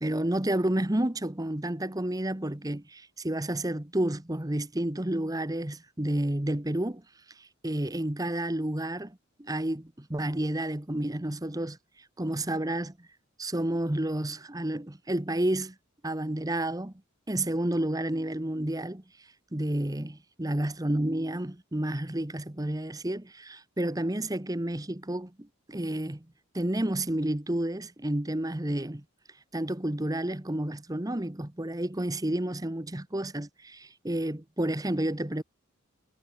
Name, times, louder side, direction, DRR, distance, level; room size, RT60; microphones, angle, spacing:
voice 1, 0.0-7.0 7.4-11.8 12.2-13.1 13.4-15.7 16.0-16.9 17.3-19.0 19.5-26.2 26.5-29.0 29.5-35.4, right 1 dB, 15° right, 1.0 m, -30 dB
head